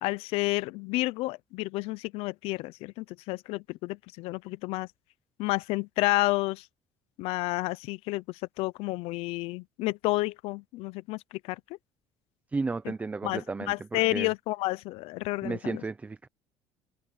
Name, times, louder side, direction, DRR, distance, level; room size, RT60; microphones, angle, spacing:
voice 1, 0.0-4.9 5.4-6.7 7.2-11.6 13.2-15.8, left 20 dB, 75° left, 0.6 m, -30 dB
voice 2, 12.5-14.3 15.4-16.3, right 3 dB, 15° right, 0.6 m, -33 dB
open air
cardioid pair, 130°, 10 cm